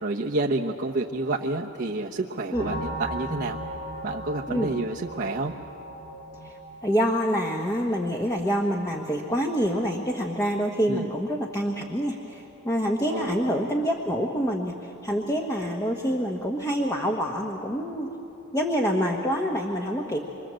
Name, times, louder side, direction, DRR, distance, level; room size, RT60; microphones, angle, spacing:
voice 1, 0.0-3.6 4.0-5.5 10.9-11.1 13.1-13.3, right 2 dB, 55° right, -3 dB, 1.1 m, -29 dB
sound 1, 2.5-11.9 12.1-12.3 12.6-12.8 13.1-13.2, equal, 85° left, 7.5 m, -40 dB
voice 2, 6.4-18.1 18.5-20.2, equal, 15° left, 0 dB, 1.3 m, -26 dB
26.5 x 24.0 x 7.7 m, 3.0 s
head